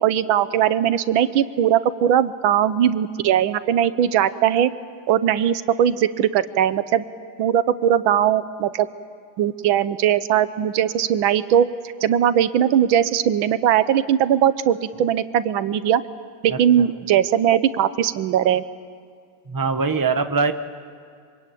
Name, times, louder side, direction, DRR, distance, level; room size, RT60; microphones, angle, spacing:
voice 1, 0.0-4.7 5.1-7.1 7.4-8.9 9.4-11.7 12.0-16.0 16.4-18.6, right 10 dB, 80° right, 14 dB, 1.6 m, -19 dB
voice 2, 19.5-20.5, right 4 dB, 25° right, 8 dB, 0.4 m, -22 dB
25.0 x 24.5 x 9.1 m, 2.2 s
omnidirectional pair, 2.2 m